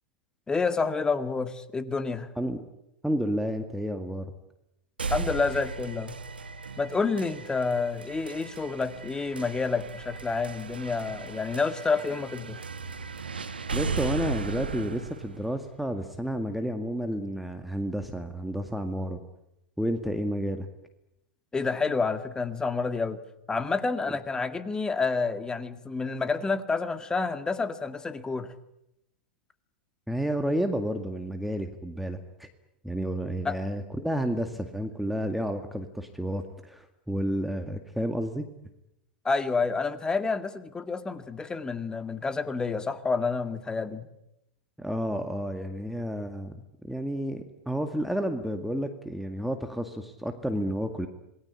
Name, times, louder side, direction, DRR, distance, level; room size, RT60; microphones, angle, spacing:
voice 1, 0.5-2.3 5.1-6.2 6.8-12.6 21.5-23.2 23.5-28.5 33.4-33.6 39.2-44.1, left 4 dB, 15° left, 11 dB, 2.1 m, -29 dB
voice 2, 3.0-4.3 13.7-19.2 19.8-20.7 30.1-32.5 32.8-38.5 44.8-51.1, equal, ahead, 6 dB, 2.0 m, -31 dB
sound 1, 5.0-16.9, right 4 dB, 85° right, 1.8 m, -36 dB
27.5 x 20.0 x 10.0 m, 0.86 s
figure-of-eight pair, 95°, 5 cm